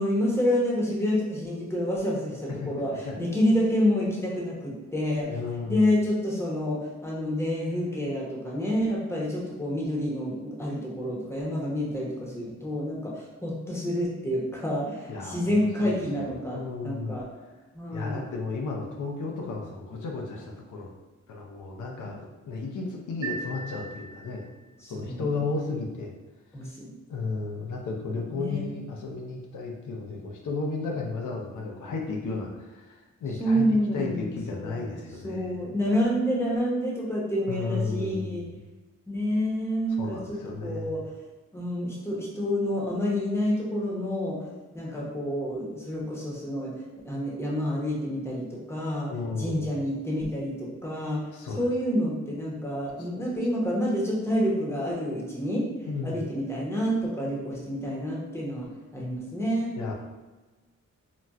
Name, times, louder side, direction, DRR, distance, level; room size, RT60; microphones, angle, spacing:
voice 1, 0.0-5.3 5.7-16.6 16.8-17.3 17.7-18.2 24.8-25.4 26.5-26.9 28.3-28.8 33.4-35.0 35.2-38.4 39.1-41.1 41.5-44.4 44.7-46.7 47.0-51.2 51.6-55.7 56.0-58.7 58.9-59.7, equal, 10° left, -4 dB, 0.8 m, -28 dB
voice 2, 5.3-5.9 15.1-17.2 17.9-20.9 21.3-24.5 24.8-26.1 27.1-33.7 33.9-35.6 37.5-38.5 40.0-40.9 49.1-49.7 51.3-51.7 53.0-53.1 55.9-56.2 59.8-59.9, left 3 dB, 85° left, 0 dB, 0.6 m, -33 dB
sound 1, 23.2-24.7, right 4 dB, 60° right, 0.6 m, -38 dB
4.0 x 2.2 x 2.3 m, 1.2 s
wide cardioid pair, 110°, 30 cm